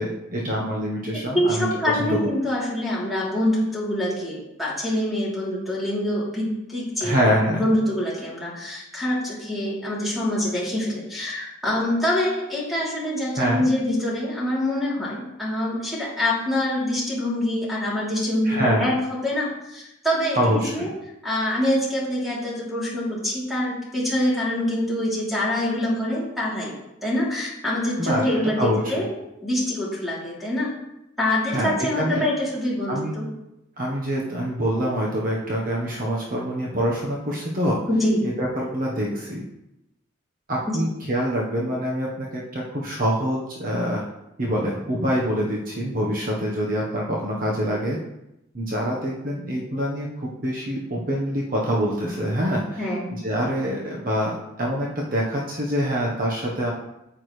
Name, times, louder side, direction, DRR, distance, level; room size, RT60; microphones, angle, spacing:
voice 1, 0.0-1.7 2.0-2.2 7.0-7.7 13.4-13.6 18.4-18.9 20.3-20.9 28.0-28.2 28.6-29.1 31.5-32.3 32.9-33.1 33.8-37.8 38.2-39.4 40.5-44.0 44.4-48.0 48.5-56.7, equal, 45° right, -3 dB, 1.2 m, -25 dB
voice 2, 1.3-20.9 21.2-26.7 27.0-29.1 29.4-30.7 31.2-33.2 37.9-38.3 52.8-53.0, left 1 dB, ahead, -7 dB, 3.3 m, -25 dB
9.2 x 8.4 x 3.3 m, 0.89 s
head